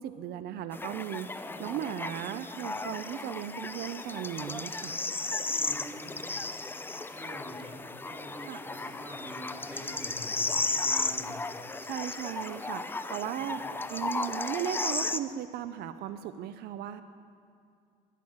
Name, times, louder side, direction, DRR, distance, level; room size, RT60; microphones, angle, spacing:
voice 1, 0.0-4.9 8.5-8.6 11.8-13.6 13.9-17.0, right 11 dB, 70° right, 11 dB, 0.5 m, -36 dB
sound 1, 0.7-15.2, left 3 dB, 10° left, 0.5 m, -34 dB
voice 2, 1.4-2.1 5.5-6.3 7.1-7.8 8.0-11.3 13.6-13.7, right 1 dB, 10° right, -5 dB, 3.7 m, -46 dB
11.0 x 10.5 x 7.7 m, 2.3 s
cardioid pair, 110°, 17 cm